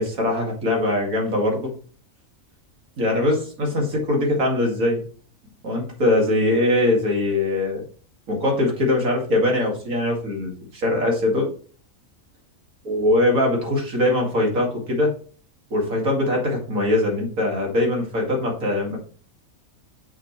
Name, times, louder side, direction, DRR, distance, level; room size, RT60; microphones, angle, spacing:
voice 1, 0.0-1.7 3.0-5.0 5.6-7.8 8.3-11.5 12.8-15.1 15.7-19.0, left 1 dB, 80° right, 0 dB, 2.7 m, -22 dB
7.5 x 6.4 x 3.2 m, 0.42 s
omnidirectional pair, 1.4 m